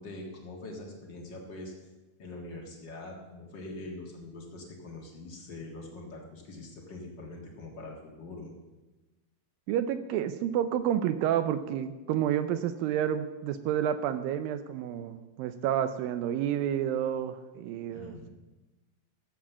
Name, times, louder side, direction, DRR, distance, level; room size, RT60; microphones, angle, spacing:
voice 1, 0.0-1.7 2.2-8.5 17.9-18.3, left 2 dB, 50° left, 0 dB, 1.3 m, -43 dB
voice 2, 9.7-18.2, right 10 dB, 80° right, 11 dB, 2.1 m, -30 dB
14.5 x 7.2 x 7.2 m, 1.2 s
omnidirectional pair, 4.6 m